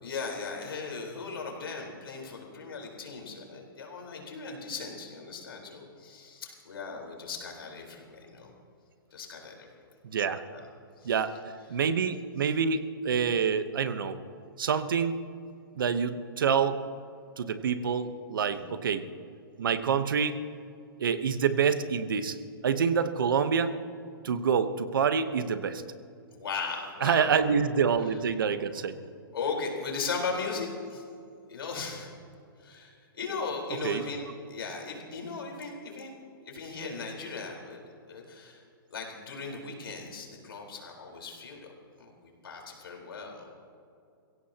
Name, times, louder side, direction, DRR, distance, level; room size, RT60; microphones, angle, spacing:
voice 1, 0.0-8.5 9.1-9.7 10.4-10.7 11.0-11.2 11.7-11.8 18.5-18.7 26.3-27.7 28.0-28.1 29.3-31.0 31.5-32.1 32.6-34.2 34.5-36.1 36.5-37.8 38.1-38.6 38.9-41.7 42.0-43.5, left 4 dB, 85° left, 0 dB, 4.3 m, -38 dB
voice 2, 10.0-10.4 11.0-11.3 11.7-14.2 14.6-15.2 15.8-16.8 17.4-19.0 19.6-20.4 21.0-22.4 22.6-23.8 24.2-25.8 27.0-29.0 33.8-34.0, right 6 dB, 65° right, 11 dB, 1.0 m, -27 dB
22.0 x 16.5 x 2.9 m, 2.5 s
hypercardioid pair, 175°, 12 cm